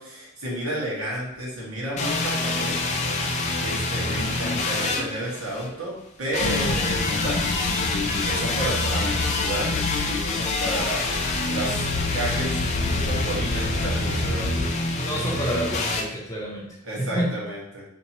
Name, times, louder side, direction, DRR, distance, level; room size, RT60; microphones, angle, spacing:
voice 1, 0.0-2.9 3.6-7.7 8.2-11.8 12.1-12.6 12.9-14.4 16.8-17.8, right 1 dB, 80° right, -5 dB, 1.4 m, -31 dB
sound 1, 1.2-16.8, left 1 dB, 45° right, 1.4 m, -44 dB
sound 2, 2.0-5.7 6.3-16.0, left 2 dB, 30° left, 0.4 m, -27 dB
sound 3, 6.4-14.7, left 2 dB, 90° left, 0.5 m, -30 dB
voice 2, 14.9-16.7 17.0-17.3, equal, 15° left, -3 dB, 0.7 m, -28 dB
4.3 x 2.9 x 2.9 m, 0.78 s
head